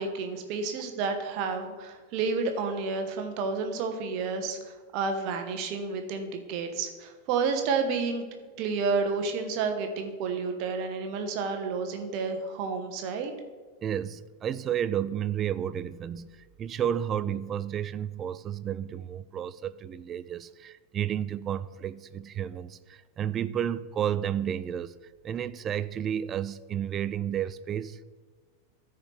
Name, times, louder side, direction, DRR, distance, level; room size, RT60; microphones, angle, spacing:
voice 1, 0.0-8.2 8.6-13.3, right 4 dB, 45° right, 6 dB, 1.1 m, -30 dB
voice 2, 13.8-25.0 25.2-28.0, right 9 dB, 25° right, 16 dB, 0.3 m, -32 dB
14.0 x 4.7 x 3.3 m, 1.4 s
figure-of-eight pair, 90°, 0 cm